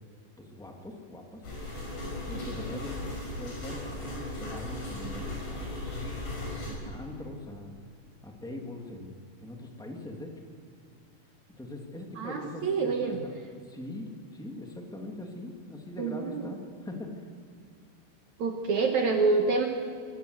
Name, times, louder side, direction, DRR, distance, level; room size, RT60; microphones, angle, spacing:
voice 1, 0.4-1.4 2.3-5.7 6.7-7.7 8.2-10.3 11.6-13.1 13.6-17.3, left 1 dB, ahead, 1 dB, 1.0 m, -42 dB
sound 1, 1.4-6.7, left 1 dB, 80° left, 8.6 m, -37 dB
voice 2, 12.2-13.2 16.0-16.4 18.4-19.7, right 4 dB, 60° right, 3 dB, 2.1 m, -27 dB
23.5 x 15.0 x 8.0 m, 2.4 s
omnidirectional pair, 4.7 m